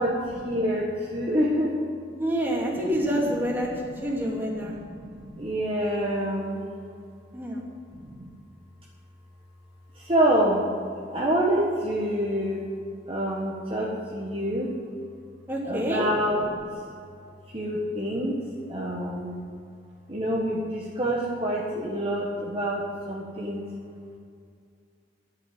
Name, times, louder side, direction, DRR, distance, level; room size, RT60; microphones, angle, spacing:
voice 1, 0.0-1.8 4.6-6.6 7.9-8.3 10.0-10.7 11.1-12.6 13.1-14.7 15.6-16.7 17.5-18.4 18.7-19.4 20.1-23.6, right 1 dB, 30° right, -4 dB, 1.6 m, -27 dB
voice 2, 2.2-3.7 4.0-4.8 7.3-7.6 15.5-16.0, equal, 10° right, -3 dB, 2.7 m, -27 dB
11.5 x 8.4 x 9.7 m, 2.3 s
head